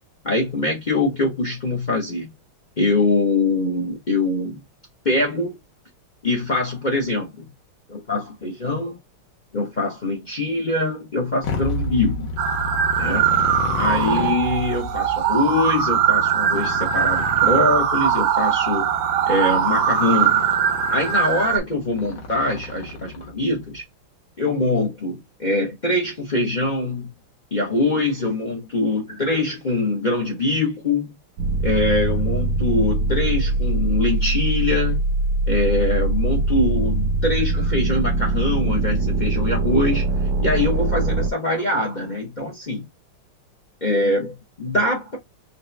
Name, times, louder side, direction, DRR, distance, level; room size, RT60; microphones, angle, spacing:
voice 1, 0.2-2.3 2.8-4.6 5.0-5.6 6.2-7.5 7.9-9.0 9.5-12.3 13.0-13.3 13.7-18.9 19.3-20.5 20.9-23.8 24.4-27.1 27.5-31.2 31.6-35.1 35.5-40.0 40.4-42.9 43.8-45.2, left 2 dB, 35° left, 0.7 m, -23 dB
Motorcycle, 11.4-23.5, left 2 dB, 70° left, 1.9 m, -32 dB
sound 1, 12.4-21.6, right 9 dB, 85° right, 1.6 m, -21 dB
sound 2, 31.4-41.3, right 2 dB, 65° right, 1.3 m, -22 dB
4.2 x 2.4 x 3.3 m
omnidirectional pair, 2.3 m